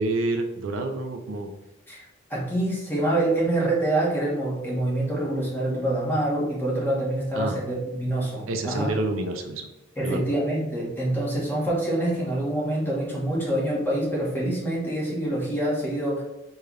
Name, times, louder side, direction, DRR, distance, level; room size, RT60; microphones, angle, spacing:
voice 1, 0.0-1.5 7.3-7.6 8.5-9.7 10.0-10.3, right 2 dB, 70° right, 4 dB, 0.5 m, -28 dB
voice 2, 1.9-8.9 10.0-16.2, right 1 dB, 10° left, -4 dB, 1.0 m, -26 dB
5.3 x 3.3 x 2.3 m, 1.0 s
head